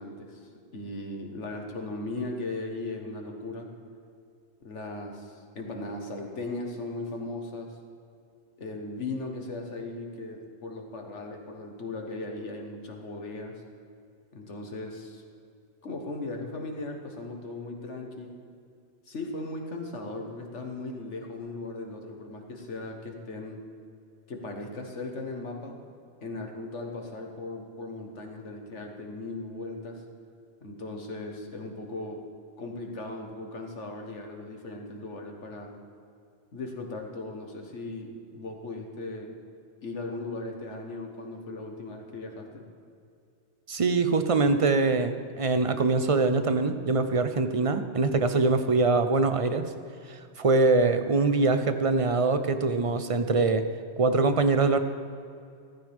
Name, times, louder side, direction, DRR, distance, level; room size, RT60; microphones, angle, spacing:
voice 1, 0.0-3.7 4.6-7.7 8.6-13.6 14.3-15.2 15.8-18.4 19.1-23.6 24.3-25.8 26.2-30.0 30.6-32.2 32.6-35.7 36.5-39.4 39.8-42.5, left 2 dB, 75° left, 2 dB, 1.8 m, -37 dB
voice 2, 43.7-49.7 50.1-53.6 54.0-54.8, right 3 dB, 35° right, 9 dB, 0.6 m, -23 dB
15.0 x 14.5 x 3.6 m, 2.4 s
omnidirectional pair, 1.2 m